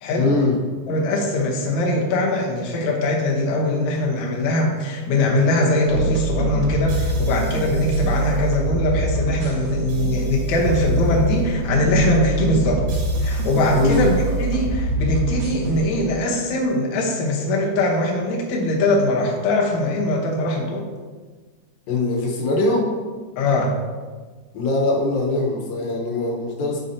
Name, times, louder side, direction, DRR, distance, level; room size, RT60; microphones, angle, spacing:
voice 1, 0.1-0.6 13.7-14.1 21.9-22.9 24.5-26.8, left 2 dB, 85° left, -1 dB, 3.0 m, -21 dB
voice 2, 0.9-12.8 13.2-20.8 23.4-23.8, left 1 dB, 65° left, -1 dB, 2.2 m, -21 dB
sound 1, 5.9-15.8, right 2 dB, 80° right, 2.9 m, -24 dB
9.6 x 6.5 x 2.8 m, 1.4 s
omnidirectional pair, 3.9 m